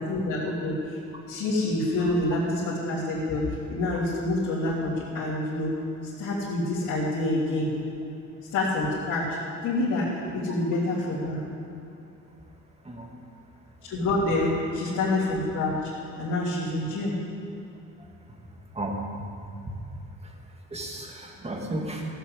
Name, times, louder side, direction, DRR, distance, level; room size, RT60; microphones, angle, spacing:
voice 1, 0.1-1.0 1.3-5.7 6.2-7.7 8.5-9.4 9.6-11.4 13.8-15.9 16.2-17.2, left 2 dB, 80° left, -11 dB, 3.2 m, -27 dB
voice 2, 18.7-19.3 19.6-19.7 20.7-22.0, right 1 dB, 20° right, 0 dB, 2.3 m, -33 dB
15.5 x 7.2 x 8.1 m, 2.7 s
cardioid pair, 90°, 30 cm